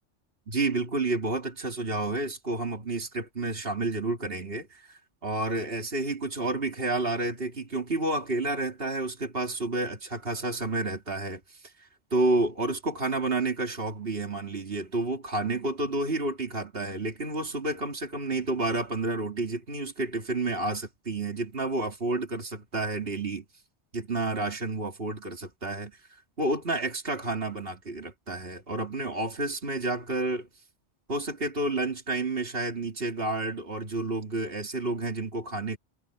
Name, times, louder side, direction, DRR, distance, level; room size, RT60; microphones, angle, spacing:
voice 1, 0.5-11.4 12.1-23.4 23.9-26.0 26.4-30.5 31.1-35.8, right 2 dB, 55° right, 3.2 m, -30 dB
omnidirectional pair, 1.2 m